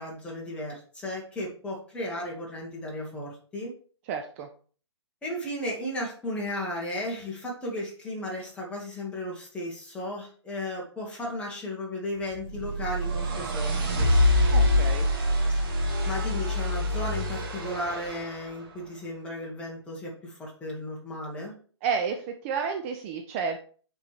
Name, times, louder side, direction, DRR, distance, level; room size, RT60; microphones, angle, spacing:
voice 1, 0.0-3.7 5.2-14.1 16.1-21.5, left 1 dB, 5° left, -3 dB, 1.9 m, -35 dB
voice 2, 4.1-4.5 14.5-15.1 21.8-23.6, right 6 dB, 30° right, 4 dB, 0.6 m, -31 dB
sound 1, 12.3-18.4, left 1 dB, 50° right, 1.8 m, -25 dB
6.5 x 4.5 x 3.5 m, 0.42 s
hypercardioid pair, 140°, 15 cm